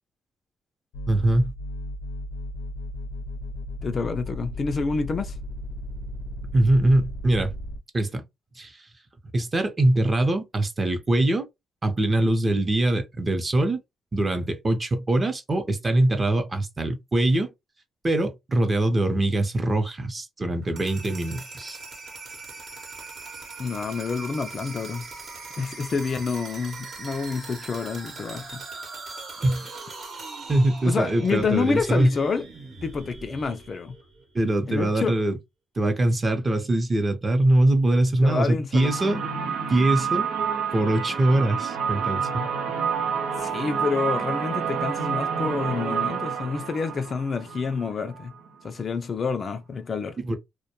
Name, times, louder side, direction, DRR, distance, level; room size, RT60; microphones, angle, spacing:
sound 1, 0.9-7.8, left 1 dB, 90° left, 0.7 m, -35 dB
voice 1, 1.1-1.5 6.5-7.5 7.9-8.2 8.6-8.7 9.3-11.5 11.8-13.8 14.1-17.5 18.0-21.8 29.4-29.8 30.5-32.1 34.3-35.4 35.8-39.2 39.7-40.3 40.7-42.5 50.3-50.4, right 1 dB, 25° right, 0.7 m, -23 dB
voice 2, 3.8-5.4 23.6-25.1 25.6-28.6 30.9-32.5 32.8-34.0 34.7-35.1 38.2-39.3 43.4-48.3 48.6-50.2, left 4 dB, 40° left, 0.3 m, -28 dB
sound 2, 20.6-34.5, right 3 dB, 55° right, 0.9 m, -40 dB
sound 3, 38.8-48.5, right 6 dB, 80° right, 0.6 m, -28 dB
2.2 x 2.1 x 2.9 m
cardioid pair, 90°, 0 cm